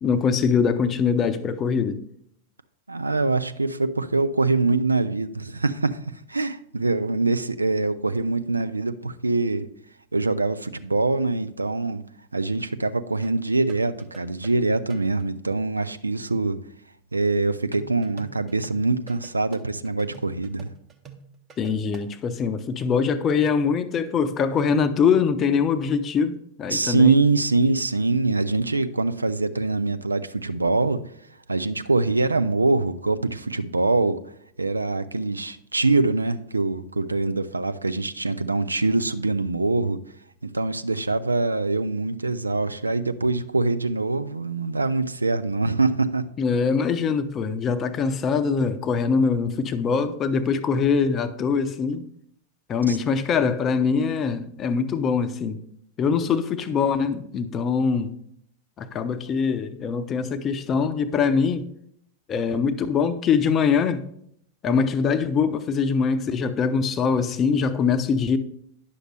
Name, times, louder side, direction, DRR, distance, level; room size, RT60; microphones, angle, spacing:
voice 1, 0.0-2.0 21.6-27.2 46.4-52.0 52.7-55.6 56.0-58.1 58.8-61.7 62.3-64.0 64.6-68.4, left 6 dB, 30° left, 0.6 m, -23 dB
voice 2, 2.9-9.7 10.1-12.0 12.3-16.6 17.1-20.7 26.7-31.0 31.5-34.2 34.6-40.0 40.4-46.3 52.9-53.0 64.7-64.8, right 3 dB, 80° right, 0.4 m, -24 dB
sound 1, 13.2-15.3 17.7-22.1, right 6 dB, 25° right, 0.9 m, -46 dB
9.8 x 6.4 x 3.2 m
figure-of-eight pair, 90°, 0 cm